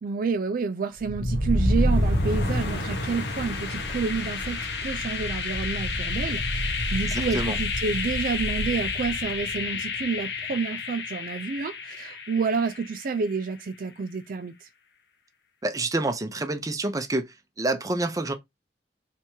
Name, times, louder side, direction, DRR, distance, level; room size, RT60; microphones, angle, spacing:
voice 1, 0.0-14.7, right 4 dB, 50° right, 0.4 m, -29 dB
sound 1, 1.0-12.9, left 2 dB, 70° left, 1.2 m, -28 dB
voice 2, 7.1-7.6 15.6-17.3 17.6-18.3, right 2 dB, 20° right, 0.7 m, -27 dB
3.4 x 3.0 x 4.4 m
head